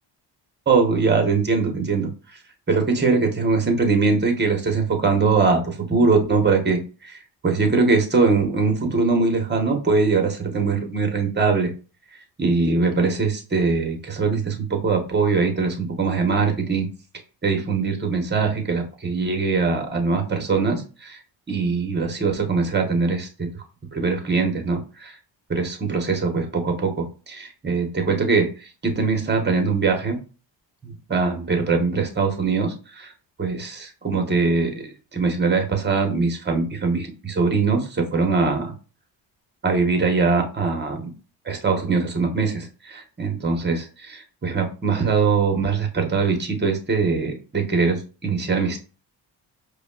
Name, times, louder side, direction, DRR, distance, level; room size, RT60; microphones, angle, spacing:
voice 1, 0.7-2.4 2.7-11.7 12.4-16.9 17.4-21.2 21.5-23.5 23.9-25.2 25.5-30.2 30.8-33.1 33.4-38.7 39.6-41.1 41.4-48.8, right 4 dB, 20° right, 4 dB, 1.1 m, -22 dB
5.0 x 2.3 x 2.3 m, 0.35 s
cardioid pair, 85°, 46 cm